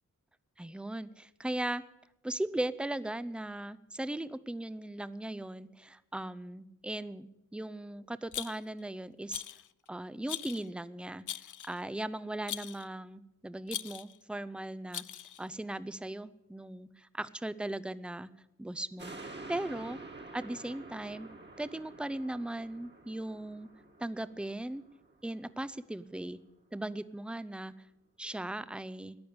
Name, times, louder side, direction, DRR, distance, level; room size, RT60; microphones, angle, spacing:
voice 1, 0.6-1.8 2.2-9.4 9.9-18.3 18.6-20.0 20.3-21.3 21.6-23.7 24.0-24.8 25.2-26.4 26.7-27.7 28.2-29.2, right 1 dB, 5° right, 15 dB, 0.5 m, -38 dB
Rattle, 8.3-8.8 9.3-9.7 10.3-10.7 11.3-11.8 12.5-12.9 13.7-14.2 14.9-15.5, left 10 dB, 70° left, 0.4 m, -40 dB
sound 1, 19.0-25.6 26.1-26.2, right 2 dB, 30° right, 1.7 m, -49 dB
14.0 x 10.5 x 8.6 m, 0.91 s
wide cardioid pair, 95°, 33 cm